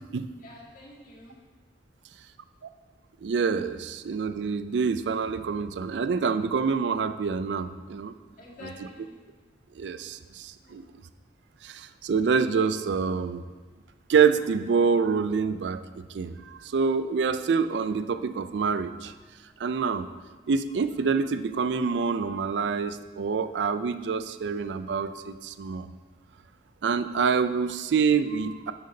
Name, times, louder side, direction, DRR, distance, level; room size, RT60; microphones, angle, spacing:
voice 1, 0.4-1.4 8.4-9.2 10.6-10.9, left 1 dB, 50° left, -4 dB, 2.1 m, -47 dB
voice 2, 3.2-8.1 9.8-10.8 11.6-13.4 14.1-15.8 16.1-19.1 19.6-20.1 20.5-25.9 26.8-28.7, right 5 dB, 75° right, 11 dB, 0.4 m, -26 dB
10.5 x 7.8 x 2.8 m, 1.4 s
head